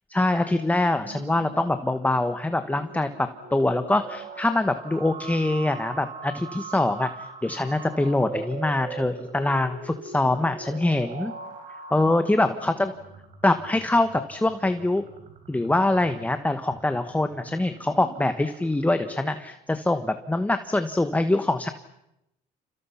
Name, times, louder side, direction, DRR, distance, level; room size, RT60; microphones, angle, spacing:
voice 1, 0.1-11.3 11.9-12.9 13.4-15.0 15.5-21.7, left 2 dB, 10° left, 9 dB, 1.3 m, -24 dB
sound 1, 1.0-19.2, right 4 dB, 55° right, 5.4 m, -42 dB
30.0 x 29.0 x 5.8 m, 0.86 s
cardioid pair, 110°, 17 cm